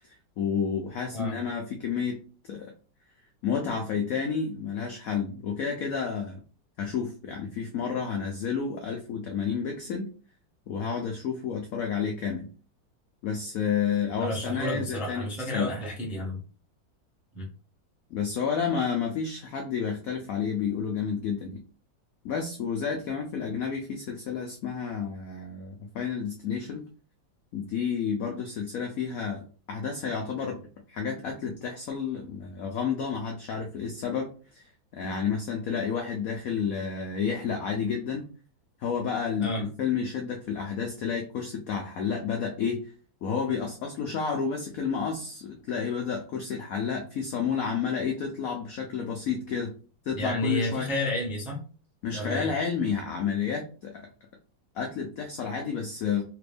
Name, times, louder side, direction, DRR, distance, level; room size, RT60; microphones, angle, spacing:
voice 1, 0.1-2.2 2.5-2.7 3.4-6.4 6.8-10.1 10.7-12.5 13.2-15.3 15.5-15.7 18.1-21.6 22.2-26.8 27.5-38.3 38.8-42.9 43.2-49.7 50.0-50.9 52.0-54.1 54.7-56.2, left 6 dB, 75° left, 3 dB, 0.8 m, -30 dB
voice 2, 14.2-16.4 17.3-17.5 39.4-39.6 50.2-51.6 52.1-52.5, left 1 dB, ahead, -2 dB, 0.4 m, -31 dB
3.4 x 2.5 x 3.3 m, 0.37 s
omnidirectional pair, 2.1 m